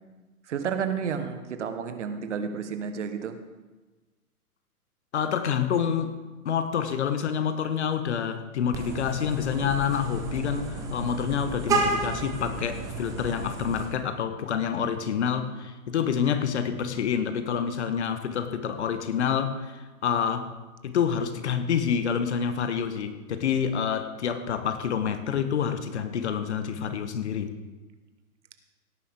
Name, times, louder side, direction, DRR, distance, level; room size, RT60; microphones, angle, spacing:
voice 1, 0.5-3.3, right 7 dB, 50° right, 8 dB, 1.2 m, -31 dB
voice 2, 5.1-6.2 6.4-20.5 20.8-27.6, left 7 dB, 50° left, 10 dB, 1.1 m, -27 dB
Vehicle horn car horn honking, 8.7-13.9, right 4 dB, 10° right, 0.7 m, -31 dB
17.0 x 10.0 x 3.5 m, 1.2 s
figure-of-eight pair, 125°, 45 cm